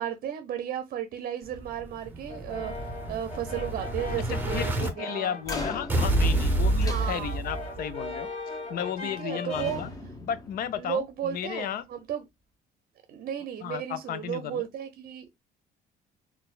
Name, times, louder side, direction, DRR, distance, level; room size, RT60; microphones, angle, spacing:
voice 1, 0.0-2.7 3.1-5.4 6.6-7.4 9.0-9.8 10.8-12.2 13.1-15.3, right 9 dB, 55° right, 0.6 m, -34 dB
Explosion, 1.5-4.9 5.9-7.9, right 1 dB, 10° right, 0.7 m, -28 dB
Brass instrument, 2.3-5.9 6.3-9.9, left 2 dB, 45° left, 1.8 m, -39 dB
voice 2, 4.3-8.3 8.7-9.9 10.2-11.8 13.6-14.6, left 9 dB, 60° left, 0.5 m, -34 dB
sound 1, 5.4-7.7 8.8-9.2 9.5-11.3, left 2 dB, 20° left, 0.8 m, -40 dB
4.1 x 2.2 x 2.3 m
cardioid pair, 110°, 17 cm